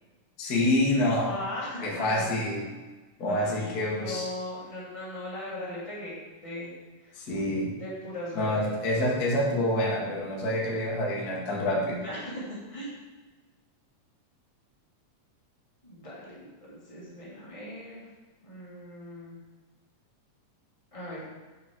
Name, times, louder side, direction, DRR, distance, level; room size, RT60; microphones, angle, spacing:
voice 1, 0.4-1.4 1.8-2.6 3.2-4.2 7.1-7.7 8.4-12.0, left 1 dB, 60° left, -4 dB, 0.9 m, -27 dB
voice 2, 1.2-2.2 3.4-6.7 7.0-7.2 7.8-8.7 11.9-12.4 12.7-12.9 15.8-18.1 18.4-19.4 20.9-21.2, left 1 dB, 15° left, -8 dB, 1.4 m, -39 dB
6.8 x 5.0 x 3.6 m, 1.3 s
omnidirectional pair, 3.4 m